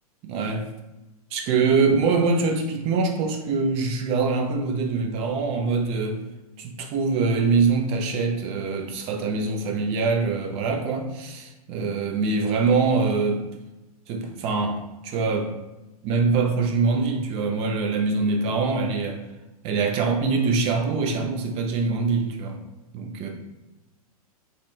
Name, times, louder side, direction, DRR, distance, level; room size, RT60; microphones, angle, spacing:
voice 1, 0.2-0.6 1.3-6.2 6.6-13.4 14.1-14.8 15.0-15.5 16.0-19.2 19.6-22.6 22.9-23.3, right 4 dB, 30° right, 3 dB, 0.4 m, -24 dB
2.8 x 2.1 x 2.3 m, 1.0 s
hypercardioid pair, 105°, 19 cm